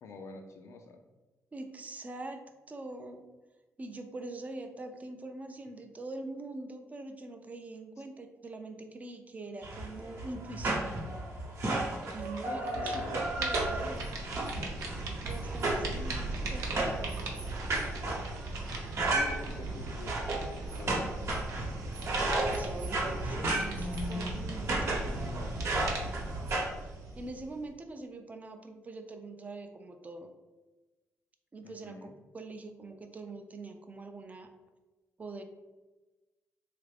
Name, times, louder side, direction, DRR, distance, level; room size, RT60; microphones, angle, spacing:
voice 1, 0.0-1.0 12.4-13.2 19.1-21.2 31.6-32.2, left 3 dB, 65° left, 5 dB, 0.5 m, -46 dB
voice 2, 1.5-3.2 3.8-10.8 12.1-14.1 14.9-17.3 22.5-25.5 26.8-30.3 31.5-32.1 32.3-34.5 35.2-35.4, right 2 dB, 30° right, 6 dB, 0.4 m, -44 dB
sound 1, 9.6-26.7, right 2 dB, 60° right, 0.8 m, -34 dB
sound 2, 12.0-12.4 12.7-27.7, right 2 dB, 90° right, 0.6 m, -39 dB
3.2 x 2.5 x 3.3 m, 1.2 s
cardioid pair, 85°, 5 cm